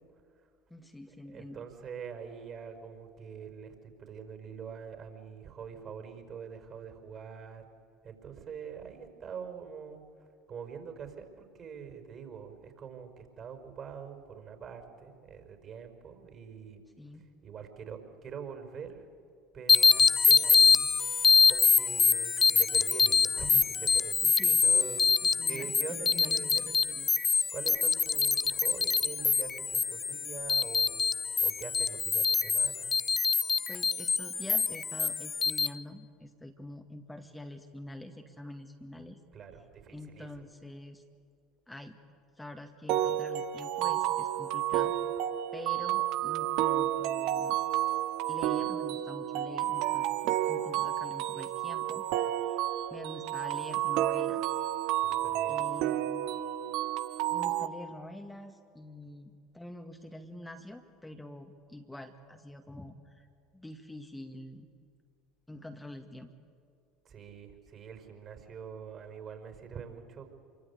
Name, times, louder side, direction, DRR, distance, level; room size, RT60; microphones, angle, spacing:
voice 1, 0.7-1.6 17.0-17.2 24.2-24.6 25.4-27.1 33.7-39.2 39.9-41.0 41.7-42.0 42.4-44.9 45.5-47.6 48.3-52.1 52.4-54.4 55.5-56.4 57.3-63.3 63.5-64.7 65.5-66.3, left 1 dB, 10° left, 4 dB, 2.0 m, -46 dB
voice 2, 1.3-7.7 8.0-10.0 10.5-16.8 17.4-19.0 19.5-26.9 27.5-31.0 31.4-32.9 39.3-40.3 55.0-55.6 67.0-70.3, right 7 dB, 40° right, 6 dB, 5.1 m, -44 dB
sound 1, 19.7-35.7, left 5 dB, 25° left, 0.8 m, -25 dB
sound 2, 42.9-57.7, right 12 dB, 60° right, 1.2 m, -31 dB
27.5 x 24.0 x 8.4 m, 2.3 s
figure-of-eight pair, 70°, 0 cm